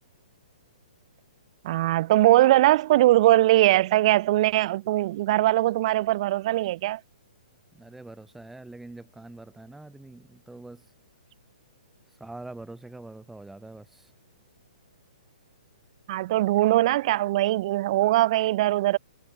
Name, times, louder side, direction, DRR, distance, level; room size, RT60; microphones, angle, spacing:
voice 1, 1.6-7.0 16.1-19.0, right 16 dB, 45° right, 0.8 m, -21 dB
voice 2, 7.7-10.9 12.2-14.1, right 2 dB, 5° right, 3.5 m, -44 dB
hypercardioid pair, 130°, 5 cm